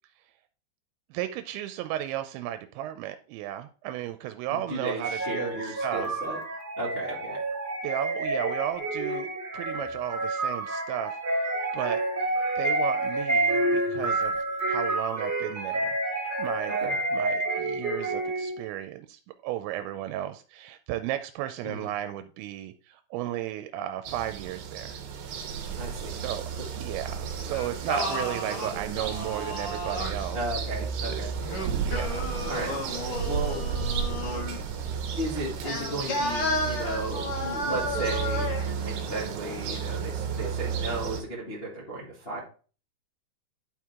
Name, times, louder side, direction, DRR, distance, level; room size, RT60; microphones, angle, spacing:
voice 1, 1.1-6.1 7.8-12.0 12.6-16.0 16.4-16.8 17.1-25.0 26.2-26.5 26.8-30.4 31.1-31.3 31.8-32.3, right 12 dB, 85° right, 9 dB, 2.8 m, -34 dB
voice 2, 4.5-6.4 6.8-7.4 16.7-16.9 21.6-21.9 25.8-26.1 30.3-31.3 32.4-32.7 33.2-33.7 35.2-38.5 38.8-42.4, right 2 dB, 85° left, -5 dB, 0.5 m, -34 dB
sound 1, 5.0-18.6, right 2 dB, 10° right, 1.0 m, -29 dB
sound 2, 24.0-41.2, right 6 dB, 65° right, 2.5 m, -33 dB
Singing, 27.5-30.3 31.4-34.6 35.6-38.7, left 1 dB, 65° left, 1.3 m, -32 dB
11.5 x 4.6 x 3.6 m, 0.38 s
omnidirectional pair, 5.1 m